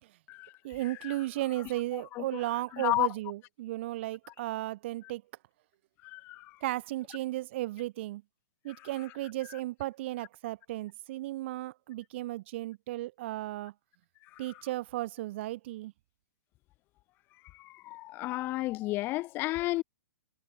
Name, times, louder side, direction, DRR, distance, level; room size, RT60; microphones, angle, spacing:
voice 1, 0.6-5.2 6.6-8.2 8.6-13.7 14.4-15.9, right 16 dB, 30° right, 3.8 m, -35 dB
voice 2, 2.8-3.1 6.0-6.5 17.6-19.8, left 19 dB, 15° left, 5.2 m, -32 dB
hypercardioid pair, 180°, 12 cm